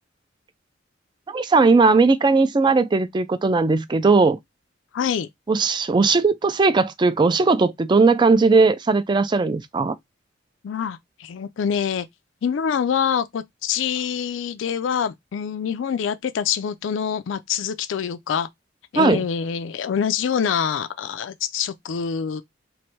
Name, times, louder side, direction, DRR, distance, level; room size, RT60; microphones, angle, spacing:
voice 1, 1.3-4.4 5.5-10.0 18.9-19.3, right 4 dB, 25° right, 0.3 m, -18 dB
voice 2, 4.9-5.3 10.6-12.1 12.4-18.5 18.9-22.4, left 7 dB, 70° left, 0.4 m, -25 dB
3.1 x 2.6 x 4.4 m
head